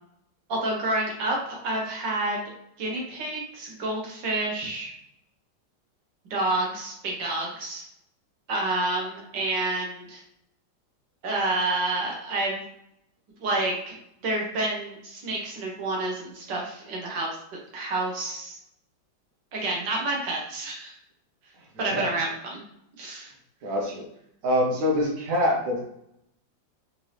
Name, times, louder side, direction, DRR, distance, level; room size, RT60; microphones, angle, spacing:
voice 1, 0.5-2.4 2.8-4.9 6.3-7.8 8.5-10.2 11.2-12.6 13.4-14.0 14.2-17.3 17.7-18.6 19.5-21.0 21.8-22.6 23.0-23.3, right 2 dB, 75° right, -2 dB, 1.6 m, -29 dB
voice 2, 23.6-24.1 24.4-25.8, left 1 dB, 55° right, -1 dB, 1.2 m, -24 dB
4.4 x 2.6 x 3.2 m, 0.78 s
omnidirectional pair, 2.0 m